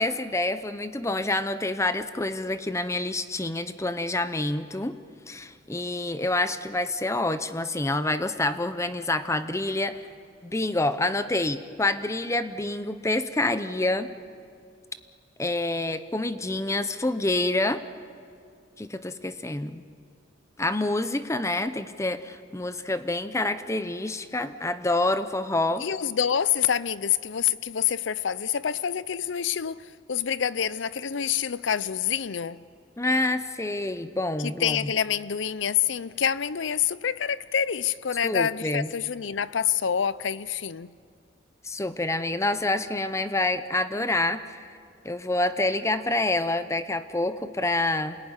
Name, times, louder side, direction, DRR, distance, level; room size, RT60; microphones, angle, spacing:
voice 1, 0.0-5.0 5.3-10.0 10.4-14.1 15.4-17.8 18.8-19.8 20.6-25.8 33.0-34.9 38.2-38.9 41.6-44.6 45.0-48.2, left 2 dB, 15° left, 0.8 m, -27 dB
voice 2, 25.8-32.6 34.4-40.9, left 8 dB, 85° left, 0.6 m, -27 dB
27.5 x 19.0 x 9.8 m
head